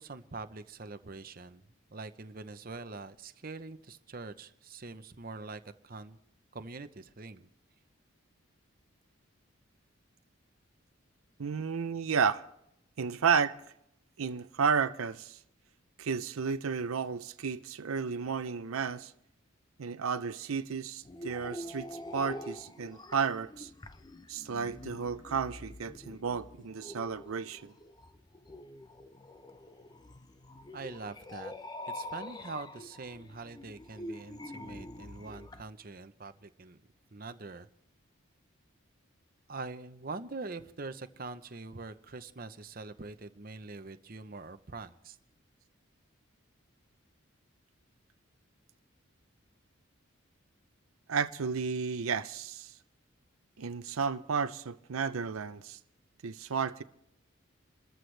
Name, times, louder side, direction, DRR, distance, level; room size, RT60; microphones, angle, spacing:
voice 1, 0.0-1.6 1.9-6.2 6.5-7.5 30.7-31.5 31.9-36.8 37.1-37.7 39.5-45.2, right 3 dB, 45° right, 0.8 m, -44 dB
voice 2, 11.4-12.4 13.0-13.6 14.2-15.4 16.0-19.1 19.8-23.7 24.3-27.7 51.1-52.7 53.6-55.8 56.2-56.8, right 6 dB, 90° right, 0.6 m, -32 dB
sound 1, 21.0-35.6, left 1 dB, 20° left, 0.6 m, -45 dB
27.5 x 14.0 x 3.3 m
head